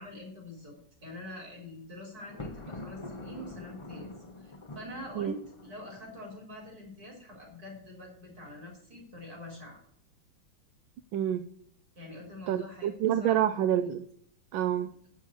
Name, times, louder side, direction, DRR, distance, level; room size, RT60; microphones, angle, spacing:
voice 1, 0.0-4.1 4.4-9.8 12.0-13.6, left 1 dB, 50° right, 0 dB, 4.4 m, -45 dB
Thunder, 2.2-6.3, left 2 dB, 25° left, 0.7 m, -45 dB
voice 2, 11.1-11.5 12.5-14.0 14.5-14.9, right 10 dB, 85° right, 10 dB, 1.4 m, -28 dB
7.6 x 7.3 x 8.1 m, 0.64 s
omnidirectional pair, 2.1 m